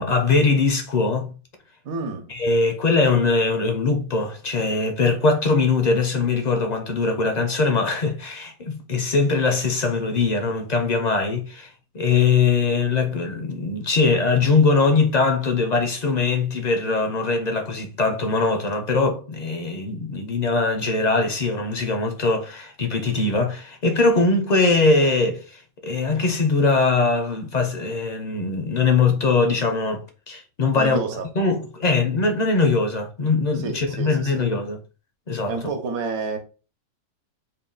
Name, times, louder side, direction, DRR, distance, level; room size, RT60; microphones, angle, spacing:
voice 1, 0.0-1.3 2.3-31.0 31.4-34.8 35.3-35.5, left 3 dB, 55° left, 0.5 m, -21 dB
voice 2, 1.8-2.3 30.7-31.3 33.5-34.4 35.5-36.4, right 4 dB, 80° right, 1.3 m, -29 dB
3.7 x 2.2 x 3.8 m
omnidirectional pair, 1.5 m